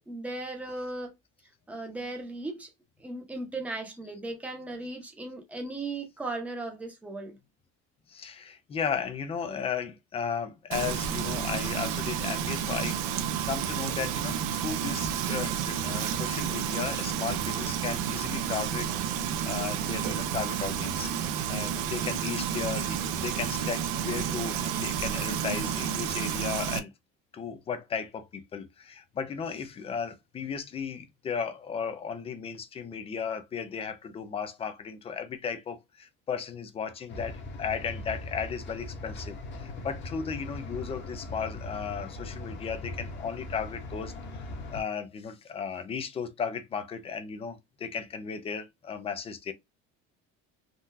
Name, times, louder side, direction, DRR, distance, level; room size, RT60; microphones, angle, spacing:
voice 1, 0.1-1.1 1.7-2.7 3.0-7.4, right 2 dB, 5° right, 0.7 m, -37 dB
voice 2, 8.1-26.9 27.3-44.1 44.7-49.5, left 6 dB, 20° left, 0.4 m, -35 dB
Frying (food), 10.7-26.8, right 9 dB, 85° right, 0.7 m, -31 dB
sound 1, 37.1-44.8, left 2 dB, 40° left, 0.9 m, -40 dB
3.7 x 2.3 x 2.6 m
cardioid pair, 165°, 31 cm